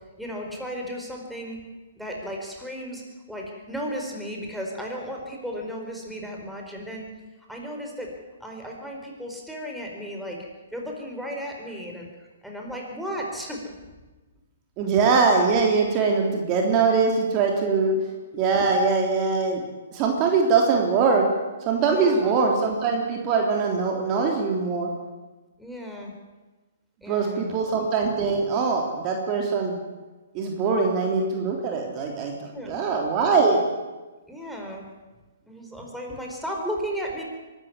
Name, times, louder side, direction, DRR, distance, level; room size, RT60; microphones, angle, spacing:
voice 1, 0.2-1.6 2.0-7.1 7.5-8.1 8.4-10.4 10.7-12.1 12.4-13.7 21.9-22.4 25.6-26.1 27.0-27.6 32.5-32.8 34.3-34.9 35.5-37.2, equal, ahead, 0 dB, 4.7 m, -34 dB
voice 2, 14.8-18.0 18.3-19.6 19.9-21.3 21.7-24.9 27.1-29.8 30.3-33.6, right 4 dB, 30° right, 1 dB, 3.5 m, -22 dB
23.0 x 13.5 x 9.7 m, 1.2 s
hypercardioid pair, 130°, 0 cm